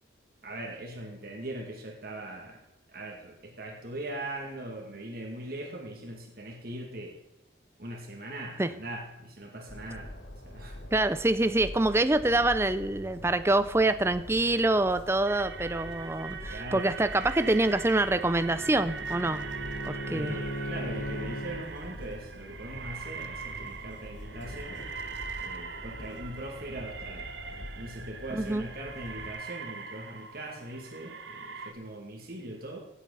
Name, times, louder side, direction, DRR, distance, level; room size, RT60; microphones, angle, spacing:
voice 1, 0.4-2.6 2.9-7.1 7.8-10.1 10.4-10.8 16.5-16.9 20.1-24.8 25.4-27.3 27.8-32.8, right 1 dB, 55° right, 1 dB, 2.4 m, -40 dB
Train, 9.7-29.3, left 1 dB, 85° left, 1.6 m, -45 dB
voice 2, 10.9-19.5 19.8-20.4 28.3-28.6, right 2 dB, 15° right, 12 dB, 0.5 m, -26 dB
sound 1, 15.3-31.7, right 5 dB, 70° right, 1.1 m, -41 dB
Bowed string instrument, 17.8-21.7, equal, 40° left, 1.3 m, -38 dB
17.0 x 8.3 x 4.1 m, 0.95 s
head